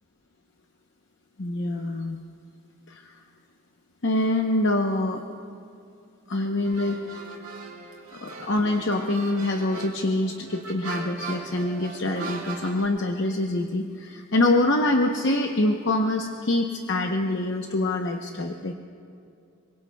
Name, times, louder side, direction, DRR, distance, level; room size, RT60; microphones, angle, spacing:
voice 1, 1.4-2.2 2.9-3.1 4.0-5.2 6.3-7.0 8.2-18.7, left 2 dB, 55° left, 2 dB, 0.8 m, -25 dB
sound 1, 6.6-12.8, right 3 dB, 90° right, 3.9 m, -39 dB
26.5 x 24.0 x 2.3 m, 2.5 s
head